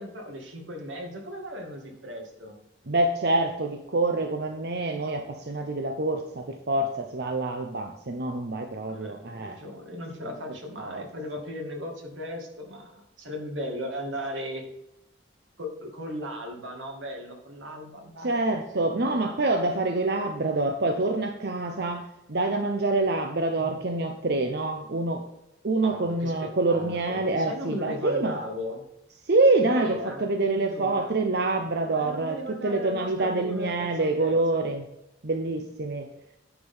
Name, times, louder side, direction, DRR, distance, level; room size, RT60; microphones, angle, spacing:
voice 1, 0.0-2.6 8.9-14.6 15.6-18.4 18.9-19.4 23.6-23.8 25.8-26.3 26.7-28.9 29.6-31.1 31.9-34.4, equal, 90° right, 2 dB, 2.3 m, -37 dB
voice 2, 2.9-9.6 10.8-11.0 18.2-25.2 25.6-28.4 29.3-34.9 35.2-36.1, right 2 dB, 60° right, 4 dB, 0.8 m, -26 dB
9.8 x 5.1 x 5.5 m, 0.85 s
head